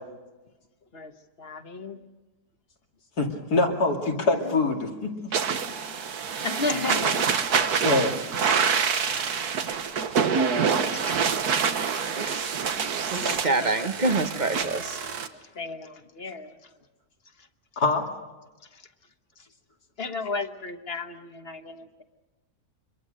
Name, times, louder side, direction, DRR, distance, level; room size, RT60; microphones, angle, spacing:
voice 1, 1.4-2.0 6.4-7.2 10.9-11.2 12.1-12.2 13.1-14.1 14.6-15.2 15.6-16.5 20.0-22.0, left 3 dB, 40° left, 8 dB, 1.4 m, -34 dB
voice 2, 3.2-5.1 7.8-8.1 17.8-18.0, left 3 dB, 90° left, 2 dB, 3.2 m, -24 dB
sound 1, 5.3-15.3, right 6 dB, 85° right, 1.7 m, -26 dB
voice 3, 12.2-12.8 13.1-15.0, right 3 dB, 35° right, 9 dB, 1.0 m, -27 dB
26.0 x 22.0 x 6.5 m, 1.2 s
omnidirectional pair, 1.6 m